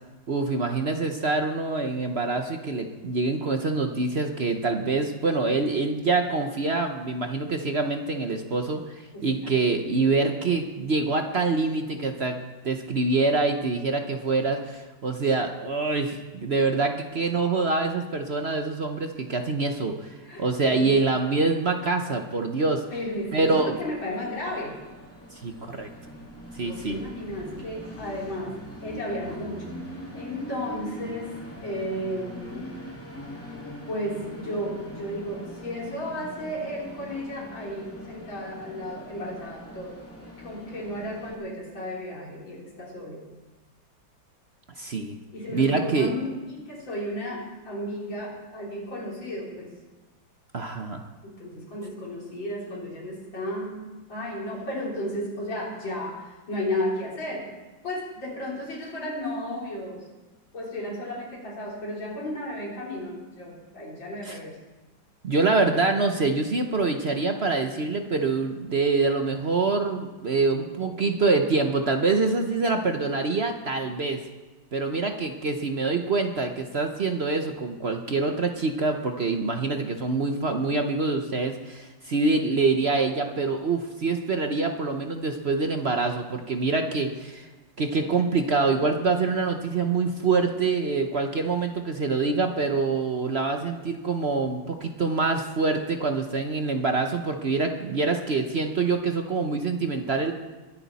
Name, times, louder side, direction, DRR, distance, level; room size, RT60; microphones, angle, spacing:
voice 1, 0.3-12.4 12.6-22.8 23.3-23.8 25.4-25.9 26.6-27.0 44.8-45.2 45.5-46.1 50.5-51.0 64.2-64.4 65.2-74.2 74.7-87.5 87.8-100.3, right 3 dB, 50° right, 5 dB, 0.8 m, -25 dB
voice 2, 9.1-9.5 20.2-21.0 22.9-24.8 26.6-29.8 30.1-32.7 33.9-40.0 40.4-43.3 45.3-49.7 51.2-53.8 54.1-57.5 57.8-60.0 60.5-64.6 88.0-88.1, left 1 dB, 80° left, -4 dB, 4.6 m, -34 dB
Train, 22.9-41.3, left 1 dB, 5° left, 2.5 m, -42 dB
22.5 x 10.5 x 4.2 m, 1.2 s
omnidirectional pair, 2.0 m